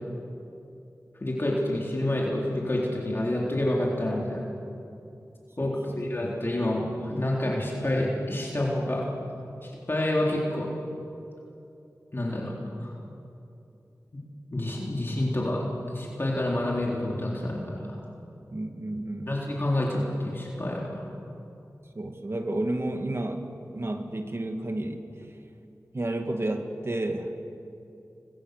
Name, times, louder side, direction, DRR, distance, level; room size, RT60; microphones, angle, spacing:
voice 1, 1.2-4.4 5.6-9.0 9.6-10.7 12.1-12.5 12.8-12.9 14.1-14.2 14.5-15.6 15.9-18.0 19.3-21.1, left 1 dB, 40° left, -3 dB, 3.9 m, -28 dB
voice 2, 5.6-6.0 18.5-19.4 21.9-25.1 25.9-27.3, right 1 dB, 45° right, 5 dB, 2.4 m, -31 dB
30.0 x 23.0 x 6.9 m, 2.7 s
wide cardioid pair, 75°, 6 cm